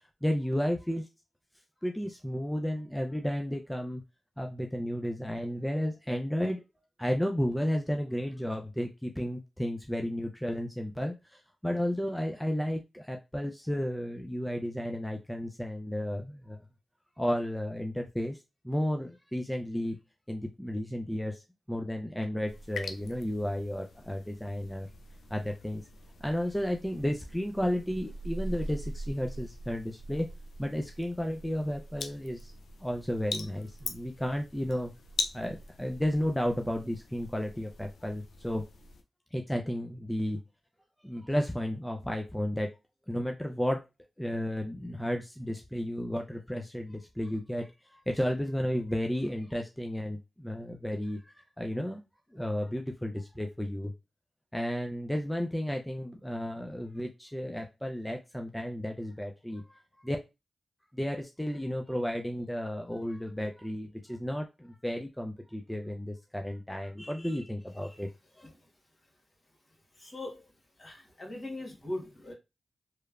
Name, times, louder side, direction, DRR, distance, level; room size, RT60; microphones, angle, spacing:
voice 1, 0.2-1.1 1.8-4.0 4.4-6.6 7.0-16.6 17.2-18.4 18.6-20.0 20.3-21.4 21.7-24.9 25.3-25.8 26.2-30.3 30.6-32.5 32.8-34.9 35.3-38.6 39.3-40.4 41.0-42.7 43.1-43.8 44.2-52.0 52.3-53.9 54.5-60.2 60.9-68.1 68.4-68.5, equal, 5° left, 3 dB, 0.4 m, -33 dB
sound 1, 22.5-39.0, left 2 dB, 80° left, 0.3 m, -42 dB
voice 2, 69.9-70.4 70.8-72.3, left 1 dB, 50° left, 0 dB, 1.3 m, -40 dB
3.0 x 2.1 x 2.4 m, 0.25 s
supercardioid pair, 40°, 0 cm